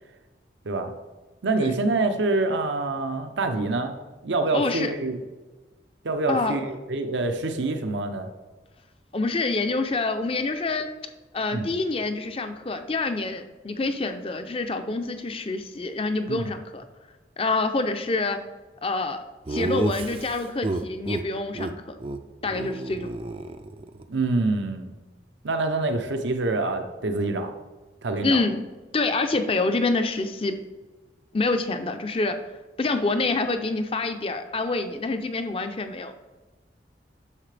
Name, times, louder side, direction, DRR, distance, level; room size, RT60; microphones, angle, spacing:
voice 1, 1.4-5.2 6.0-8.3 11.5-11.7 16.3-16.5 24.1-24.9 25.4-27.5 28.0-28.4, right 2 dB, 80° right, 6 dB, 0.7 m, -26 dB
voice 2, 4.5-4.9 6.3-6.6 9.1-10.9 11.3-16.8 17.4-18.4 18.8-19.2 19.5-22.0 22.4-23.1 28.2-28.6 28.9-30.6 31.3-32.4 32.8-36.1, left 3 dB, 30° left, 8 dB, 0.5 m, -26 dB
Laughter, 19.5-21.2 21.5-21.7 22.0-22.2 22.5-24.0, right 2 dB, 30° right, 0.4 m, -30 dB
9.9 x 6.6 x 3.3 m, 1.2 s
head